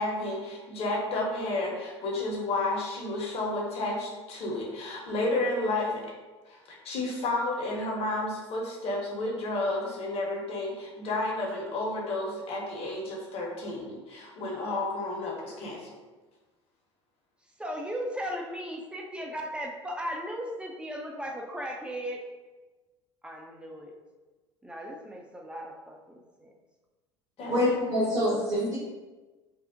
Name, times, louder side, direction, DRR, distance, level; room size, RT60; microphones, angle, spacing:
voice 1, 0.0-6.1 6.5-16.0 27.4-27.5 28.3-28.4, left 2 dB, 40° left, -1 dB, 0.7 m, -31 dB
voice 2, 17.6-22.2 23.2-23.9 24.6-26.5 27.4-27.7, equal, 5° right, 1 dB, 0.4 m, -37 dB
voice 3, 27.5-28.8, left 1 dB, 55° right, -9 dB, 1.0 m, -26 dB
2.6 x 2.0 x 2.5 m, 1.2 s
figure-of-eight pair, 70°, 15 cm